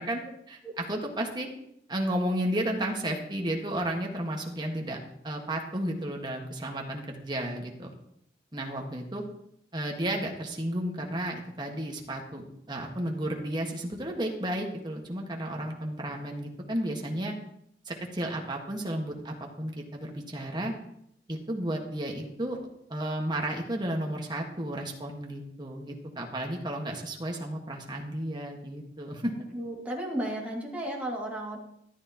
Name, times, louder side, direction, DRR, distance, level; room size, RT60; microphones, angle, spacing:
voice 1, 0.0-1.5 1.9-5.0 5.2-7.9 8.5-9.2 9.7-17.3 17.8-20.7 21.3-22.6 22.9-29.3, right 1 dB, 25° right, 1 dB, 1.6 m, -33 dB
voice 2, 29.4-31.6, right 1 dB, 10° right, -4 dB, 2.3 m, -34 dB
14.0 x 12.0 x 3.0 m, 0.73 s
head